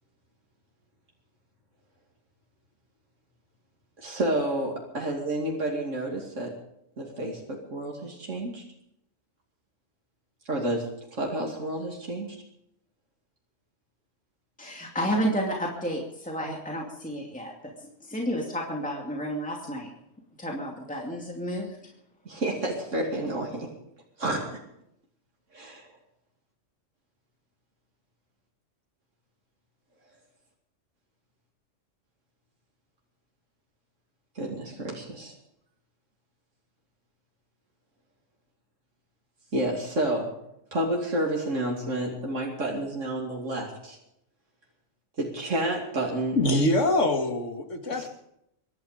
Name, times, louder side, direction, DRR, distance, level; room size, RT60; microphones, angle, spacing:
voice 1, 4.0-6.6 7.0-8.6 10.5-12.4 16.4-16.5 22.2-23.7 24.2-24.6 25.5-25.9 34.3-35.3 39.5-40.4 40.7-44.0 45.2-46.7 47.9-48.1, right 1 dB, 85° right, -1 dB, 3.0 m, -30 dB
voice 2, 14.6-19.9 20.4-21.8, equal, 5° left, -1 dB, 2.5 m, -31 dB
voice 3, 46.4-48.1, left 2 dB, 85° left, 5 dB, 2.2 m, -24 dB
23.5 x 12.0 x 5.1 m, 0.76 s
omnidirectional pair, 1.2 m